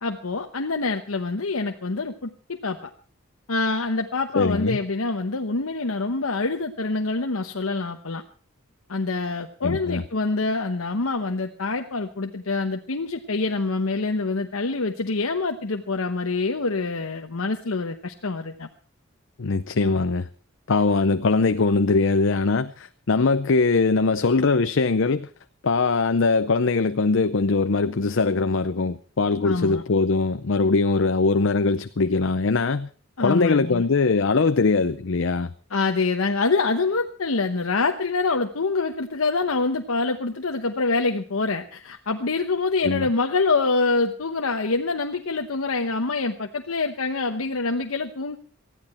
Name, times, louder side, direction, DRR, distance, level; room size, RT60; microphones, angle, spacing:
voice 1, 0.0-2.9 3.5-8.2 8.9-18.7 29.4-29.8 33.2-33.8 35.7-48.4, left 3 dB, 90° left, 1.0 m, -25 dB
voice 2, 4.3-4.8 9.6-10.0 19.4-20.3 20.7-25.3 25.6-32.9 33.2-35.5 42.8-43.1, left 4 dB, 60° left, 0.6 m, -21 dB
19.5 x 14.0 x 4.3 m
head